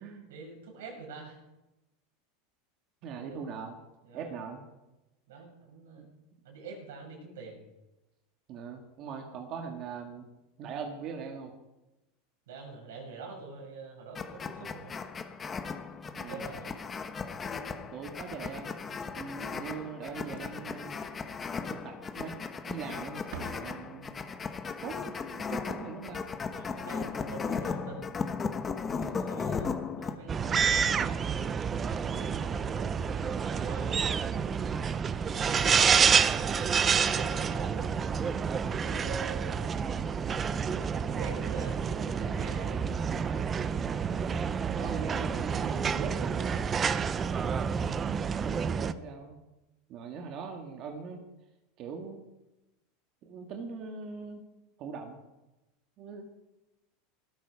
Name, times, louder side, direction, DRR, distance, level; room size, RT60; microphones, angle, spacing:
voice 1, 0.3-1.4 3.0-3.4 4.0-4.4 5.3-6.1 6.4-7.6 12.5-14.9 16.0-16.7 26.5-28.1 29.0-30.9 31.7-34.2 35.2-37.9 38.7-39.7 40.8-43.5, right 4 dB, 90° right, 1 dB, 6.6 m, -46 dB
voice 2, 3.0-3.8 4.1-4.6 6.0-6.1 8.5-10.3 10.6-11.5 16.1-16.6 17.9-18.8 19.2-21.1 21.7-22.4 22.7-24.2 24.8-26.2 29.0-29.3 32.0-32.7 44.8-46.7 48.3-49.4 49.9-51.3 51.8-52.2 53.2-54.5 54.8-55.2 56.0-56.2, right 6 dB, 40° right, 3 dB, 1.9 m, -41 dB
sound 1, 14.1-30.2, left 5 dB, 20° left, 1.1 m, -36 dB
Slam, 20.1-20.8 21.0-21.2 21.6-21.7 22.5-22.9 23.1-24.4 27.1-27.2 27.4-27.7 29.2-29.3, right 6 dB, 75° right, 1.4 m, -48 dB
sound 2, 30.3-48.9, right 6 dB, 20° right, 0.6 m, -29 dB
18.5 x 13.0 x 4.9 m, 1.0 s
supercardioid pair, 150°, 0 cm